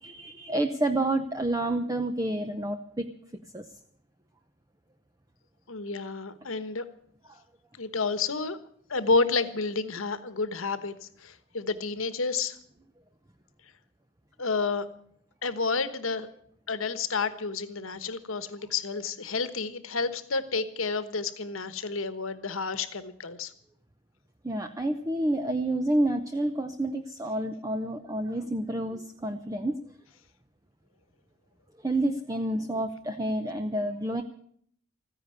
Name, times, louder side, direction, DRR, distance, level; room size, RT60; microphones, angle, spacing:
voice 1, 0.0-3.1 3.5-3.6 24.4-29.8 31.8-34.2, right 1 dB, 15° right, 7 dB, 0.7 m, -29 dB
voice 2, 5.7-6.8 7.8-8.6 8.9-12.6 14.4-14.9 15.4-16.3 16.7-23.5, left 4 dB, 75° left, 12 dB, 1.3 m, -30 dB
14.5 x 10.0 x 9.6 m, 0.64 s
head